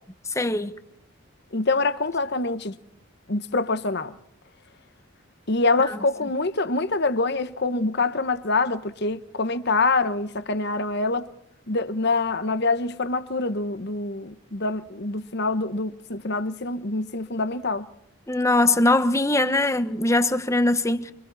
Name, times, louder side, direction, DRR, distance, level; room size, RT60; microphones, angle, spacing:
voice 1, 0.3-0.7 18.3-21.1, left 2 dB, 15° left, 1.1 m, -21 dB
voice 2, 1.5-2.7 3.3-4.1 5.5-11.3 11.7-17.8, left 3 dB, 50° left, 1.2 m, -25 dB
30.0 x 25.0 x 4.1 m
head